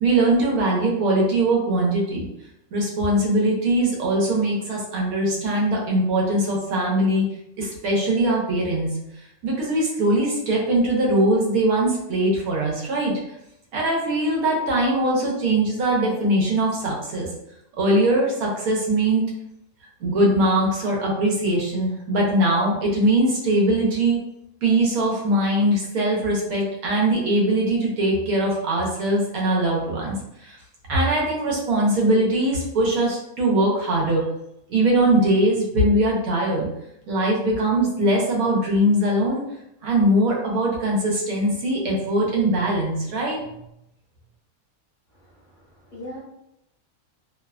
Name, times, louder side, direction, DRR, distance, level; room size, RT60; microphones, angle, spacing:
voice 1, 0.0-2.3 2.7-7.3 7.6-8.9 9.4-13.1 13.7-17.3 17.8-19.3 20.0-24.2 24.6-30.6 30.9-34.2 34.7-36.7 37.1-39.4 39.8-43.4, right 1 dB, 90° right, -2 dB, 1.2 m, -21 dB
voice 2, 45.1-46.2, equal, 45° left, -7 dB, 0.7 m, -41 dB
2.8 x 2.1 x 2.3 m, 0.82 s
omnidirectional pair, 1.5 m